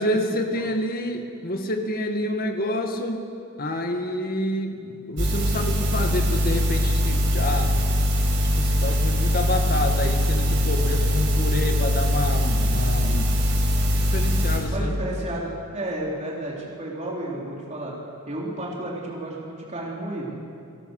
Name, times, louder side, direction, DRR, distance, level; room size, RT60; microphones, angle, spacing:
voice 1, 0.0-3.3 3.6-7.8 8.4-13.3 13.7-15.0, left 1 dB, 45° left, 4 dB, 2.1 m, -28 dB
sound 1, 5.2-14.6, left 1 dB, 55° right, 5.4 m, -22 dB
voice 2, 14.7-17.9 18.3-20.4, right 1 dB, 30° right, -3 dB, 3.8 m, -32 dB
30.0 x 18.0 x 6.7 m, 2.5 s
head